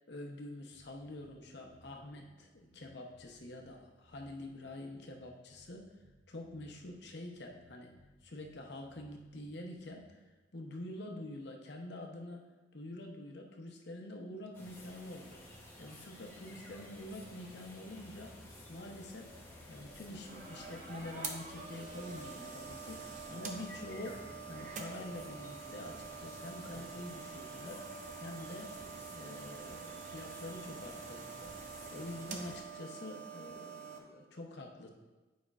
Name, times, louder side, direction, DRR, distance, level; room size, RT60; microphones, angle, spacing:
voice 1, 0.0-5.9 6.3-7.9 8.2-10.2 10.5-15.4 15.8-18.4 18.7-19.3 19.7-27.9 28.2-28.7 29.1-34.9, left 1 dB, 60° left, 2 dB, 0.8 m, -46 dB
sound 1, 0.7-10.3, equal, 60° right, 1.3 m, -65 dB
sound 2, 14.5-32.6, left 1 dB, 10° left, 0.8 m, -53 dB
sound 3, 20.0-34.0, right 5 dB, 40° right, 0.6 m, -46 dB
9.4 x 5.1 x 2.4 m, 1.2 s
head